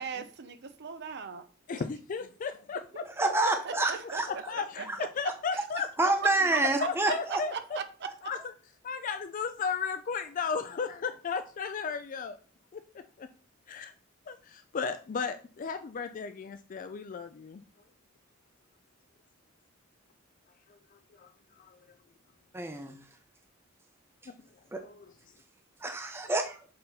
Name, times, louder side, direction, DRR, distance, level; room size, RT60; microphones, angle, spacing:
voice 1, 0.0-1.4 2.9-4.4 4.8-5.6 6.2-8.1, right 6 dB, 55° right, 0.7 m, -39 dB
voice 2, 1.7-3.0 4.5-4.9 5.2-6.1 6.8-7.5 8.2-8.4 8.8-12.4 12.7-12.8 13.2-13.3 13.7-13.9 14.3-17.6 20.7-21.3 21.6-21.8 24.3-24.4 24.8-25.1, left 5 dB, 40° left, 0.4 m, -35 dB
voice 3, 3.2-4.3 4.9-5.0 6.0-7.4 22.5-23.0 24.7-24.8 25.8-26.6, right 2 dB, 10° right, 0.6 m, -28 dB
6.6 x 4.0 x 4.1 m
head